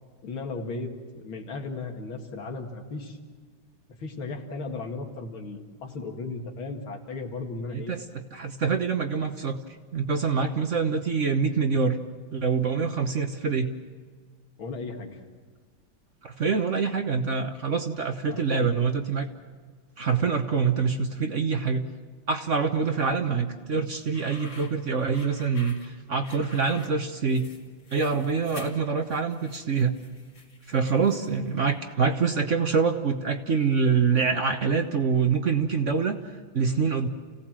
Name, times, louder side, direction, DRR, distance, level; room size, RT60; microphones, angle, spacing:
voice 1, 0.2-3.2 4.0-7.9 14.6-15.2 18.3-18.7 35.3-35.4, left 3 dB, 90° left, 2 dB, 2.9 m, -36 dB
voice 2, 7.7-8.0 8.3-9.6 9.9-12.0 12.3-13.7 16.2-19.3 20.0-21.9 22.3-27.5 27.9-30.0 30.7-36.2 36.5-37.1, right 5 dB, 45° right, 6 dB, 1.1 m, -25 dB
sound 1, 23.9-31.5, left 2 dB, 65° left, 3.4 m, -49 dB
29.0 x 17.0 x 7.5 m, 1.5 s
omnidirectional pair, 2.2 m